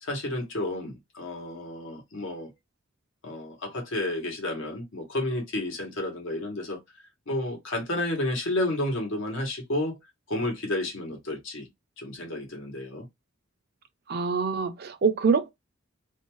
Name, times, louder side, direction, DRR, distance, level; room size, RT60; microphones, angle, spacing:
voice 1, 0.0-2.5 3.2-6.8 7.3-10.0 10.3-11.7 12.0-13.1, left 1 dB, 70° left, 1.1 m, -31 dB
voice 2, 14.1-15.5, right 5 dB, 50° right, 0.5 m, -25 dB
2.6 x 2.2 x 3.0 m
head